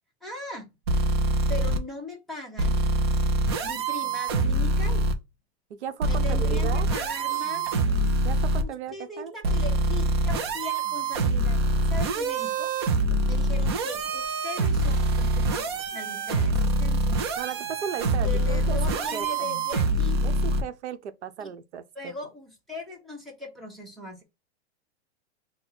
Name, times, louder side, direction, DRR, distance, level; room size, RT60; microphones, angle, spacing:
voice 1, 0.2-0.7 1.5-2.8 3.6-5.0 6.0-7.7 8.6-12.7 13.3-17.3 18.2-20.2 21.4-21.5 21.9-24.2, left 2 dB, ahead, 1.0 m, -39 dB
sound 1, 0.9-1.8 2.6-5.1 6.0-8.6 9.4-20.6, right 2 dB, 25° right, 0.3 m, -25 dB
voice 2, 5.7-6.9 8.2-9.5 13.1-13.2 17.4-19.3 20.2-22.1, right 8 dB, 90° right, 0.9 m, -36 dB
4.3 x 2.1 x 3.9 m
hypercardioid pair, 160°, 33 cm